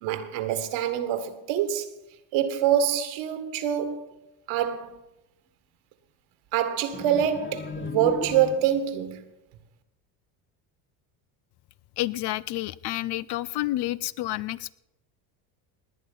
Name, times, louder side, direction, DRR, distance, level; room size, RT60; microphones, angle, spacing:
voice 1, 0.0-1.9 2.3-4.2 4.5-5.0 6.5-9.3, right 9 dB, 70° right, 1.9 m, -25 dB
sound 1, 6.9-9.0, left 5 dB, 25° left, 0.9 m, -36 dB
voice 2, 12.0-14.7, left 16 dB, 55° left, 0.6 m, -29 dB
19.0 x 9.4 x 5.4 m
supercardioid pair, 80°, 49 cm